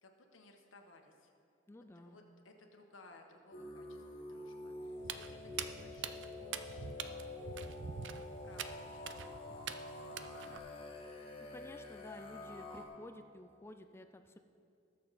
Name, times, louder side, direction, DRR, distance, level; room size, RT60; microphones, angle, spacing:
voice 1, 0.0-1.3 2.0-7.3 7.6-7.9 8.4-10.3, left 2 dB, 85° left, 3 dB, 1.3 m, -60 dB
voice 2, 1.7-2.2 11.5-14.4, left 1 dB, 10° left, 8 dB, 0.3 m, -53 dB
sound 1, 3.5-12.9, left 2 dB, 30° left, 1.4 m, -47 dB
Walk footsteps, 5.0-10.6, right 7 dB, 65° right, 0.5 m, -45 dB
19.5 x 6.7 x 4.2 m, 2.6 s
head